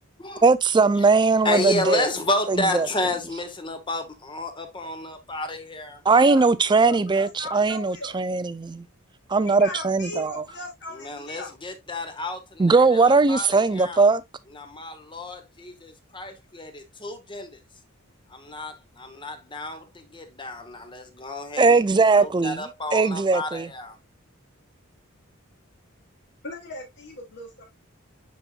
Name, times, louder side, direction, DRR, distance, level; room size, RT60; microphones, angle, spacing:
voice 1, 0.4-2.0 2.5-2.9 6.1-8.8 9.3-10.3 12.6-14.2 21.6-22.6 22.9-23.7, right 4 dB, 20° right, 0.4 m, -19 dB
voice 2, 1.4-6.0 10.9-14.1 14.5-17.6 18.3-21.8 22.2-24.0, left 2 dB, 25° left, 1.2 m, -31 dB
voice 3, 6.1-8.2 9.4-11.5 22.1-22.2 26.4-27.6, equal, 55° left, 2.5 m, -37 dB
10.0 x 4.2 x 2.4 m
head